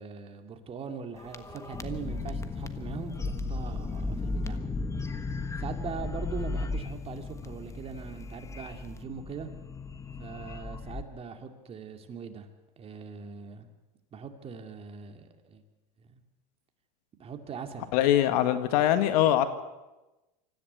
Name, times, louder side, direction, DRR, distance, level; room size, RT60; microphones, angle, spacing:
voice 1, 0.0-4.6 5.6-9.5 10.2-12.5 12.8-13.7 14.1-15.6 16.0-16.2 17.2-17.9, right 6 dB, 30° right, 6 dB, 2.4 m, -41 dB
sound 1, 1.2-11.0, left 3 dB, 15° left, 1.3 m, -35 dB
voice 2, 17.9-19.5, left 12 dB, 70° left, 10 dB, 1.9 m, -22 dB
25.0 x 14.5 x 8.2 m, 1.1 s
supercardioid pair, 125°, 21 cm